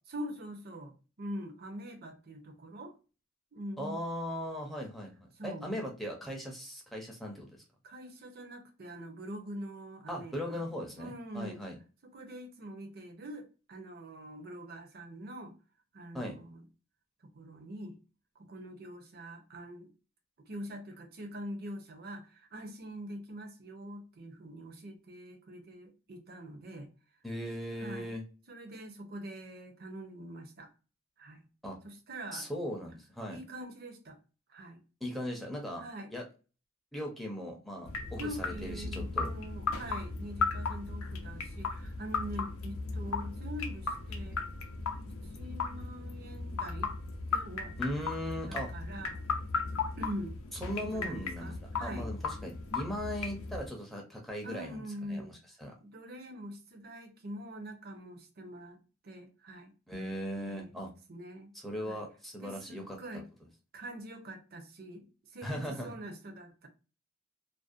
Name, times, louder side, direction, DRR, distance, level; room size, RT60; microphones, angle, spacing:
voice 1, 0.1-2.9 3.5-4.0 5.3-5.7 7.8-10.7 11.0-11.6 12.0-15.5 15.9-16.6 17.3-18.0 18.4-19.9 20.4-26.9 27.8-28.1 28.5-30.7 31.2-31.4 31.8-32.5 33.3-34.2 34.5-34.8 35.8-36.1 38.1-44.4 45.1-46.9 47.3-47.8 48.5-49.2 50.0-50.4 50.8-52.1 54.4-55.4 55.8-59.7 60.4-60.8 61.1-61.5 61.9-62.0 62.4-63.3 63.7-66.7, equal, 50° right, 0.6 m, -44 dB
voice 2, 3.8-5.1 5.4-7.5 10.1-11.7 16.1-16.4 27.2-28.2 31.6-31.8 32.3-33.4 35.0-35.8 36.1-36.2 36.9-39.3 47.8-48.7 50.6-51.5 51.8-55.7 59.9-60.9 61.6-63.0 65.4-65.9, equal, ahead, 0.5 m, -38 dB
sound 1, 37.9-53.7, left 4 dB, 90° left, 0.5 m, -36 dB
2.5 x 2.0 x 2.4 m
head